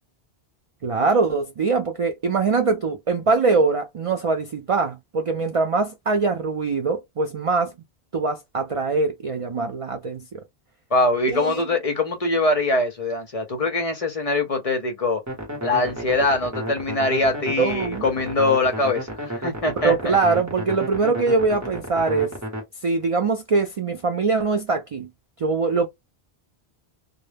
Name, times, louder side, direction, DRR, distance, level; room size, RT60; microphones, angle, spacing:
voice 1, 0.8-7.7 8.1-10.4 11.3-11.6 17.6-18.1 19.8-22.3 22.8-25.1 25.4-25.9, right 4 dB, 60° right, 0.3 m, -22 dB
voice 2, 10.9-15.2 15.6-20.2, left 2 dB, 45° left, 0.5 m, -23 dB
sound 1, 15.3-22.6, right 1 dB, 15° right, 0.9 m, -32 dB
2.1 x 2.1 x 3.2 m
omnidirectional pair, 1.1 m